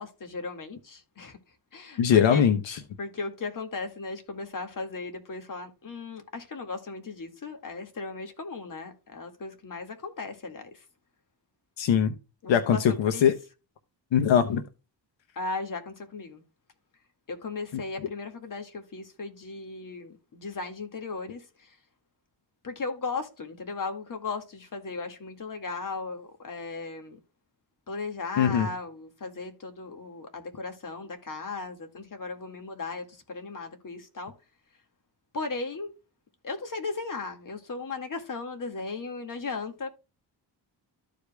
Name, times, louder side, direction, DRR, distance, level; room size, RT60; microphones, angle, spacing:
voice 1, 0.0-1.4 1.7-2.4 3.0-10.9 12.4-13.3 15.4-16.4 17.3-21.8 22.6-27.2 27.9-34.3 35.3-35.9 36.4-39.9, left 3 dB, 45° left, 2.0 m, -36 dB
voice 2, 2.0-2.7 11.8-12.1 12.5-13.3 14.1-14.6 28.4-28.7, left 8 dB, 85° left, 0.9 m, -21 dB
13.5 x 5.0 x 2.3 m
cardioid pair, 110°, 44 cm